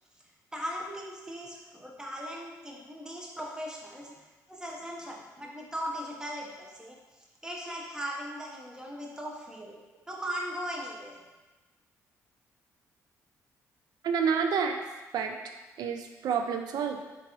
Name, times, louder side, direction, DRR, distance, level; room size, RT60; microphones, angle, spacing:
voice 1, 0.5-9.8 10.1-11.3, equal, 10° right, -2 dB, 0.9 m, -39 dB
voice 2, 14.0-14.8 15.1-15.4 15.8-17.0, right 6 dB, 65° right, 5 dB, 0.4 m, -28 dB
3.7 x 2.5 x 3.0 m, 1.2 s
supercardioid pair, 55°, 7 cm